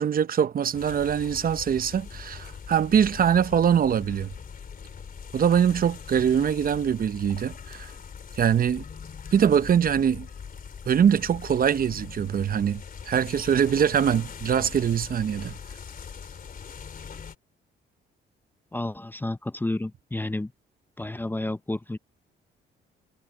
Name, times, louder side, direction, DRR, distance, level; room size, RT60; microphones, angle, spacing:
voice 1, 0.0-4.3 5.3-7.9 8.4-8.8 9.3-10.3 10.9-15.6, right 8 dB, 45° right, 0.8 m, -23 dB
sound 1, 0.7-17.3, left 6 dB, 45° left, 3.1 m, -41 dB
voice 2, 18.7-20.5 21.0-22.0, left 2 dB, 10° left, 0.6 m, -31 dB
cardioid pair, 90°, 20 cm